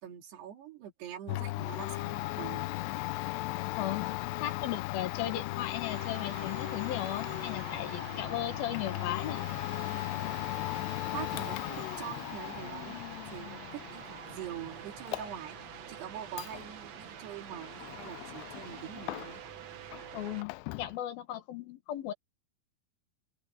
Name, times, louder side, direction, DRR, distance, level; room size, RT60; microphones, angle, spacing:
voice 1, 0.0-2.6 11.1-13.0 13.3-15.6 15.9-19.4, right 10 dB, 80° right, 4.5 m, -44 dB
Domestic sounds home sounds, 1.3-19.6 19.9-21.0, left 19 dB, 85° left, 2.8 m, -38 dB
voice 2, 3.8-4.2 4.4-9.5 20.1-22.1, left 12 dB, 70° left, 3.1 m, -36 dB
sound 1, 5.9-20.4, right 9 dB, 60° right, 1.8 m, -47 dB
omnidirectional pair, 4.8 m